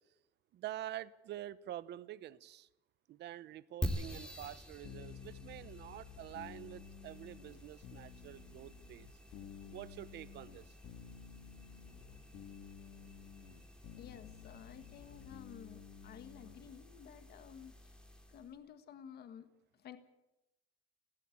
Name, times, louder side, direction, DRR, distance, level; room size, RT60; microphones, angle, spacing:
voice 1, 0.5-2.7 3.1-9.1 9.6-10.7, right 13 dB, 60° right, 17 dB, 0.9 m, -47 dB
sound 1, 3.8-18.5, equal, 5° left, 2.7 m, -48 dB
sound 2, 4.8-16.7, left 8 dB, 80° left, 2.1 m, -53 dB
voice 2, 14.0-18.0 18.3-19.5 19.7-20.0, left 8 dB, 50° left, 10 dB, 1.6 m, -53 dB
20.0 x 16.5 x 8.7 m, 0.94 s
cardioid pair, 150°, 20 cm